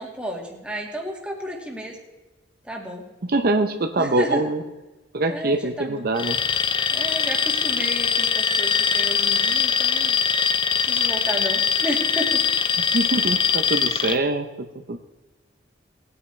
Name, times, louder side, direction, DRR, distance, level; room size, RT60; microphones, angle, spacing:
voice 1, 0.0-2.0 2.6-3.0 4.0-4.4 5.3-6.0 6.9-10.2 10.8-12.4, equal, 5° right, -1 dB, 1.9 m, -32 dB
voice 2, 3.3-4.6 5.1-6.4 12.9-15.0, right 2 dB, 55° right, 6 dB, 0.7 m, -24 dB
Alarm, 6.2-14.2, left 6 dB, 25° left, 0.5 m, -22 dB
19.0 x 9.4 x 3.3 m, 1.1 s
head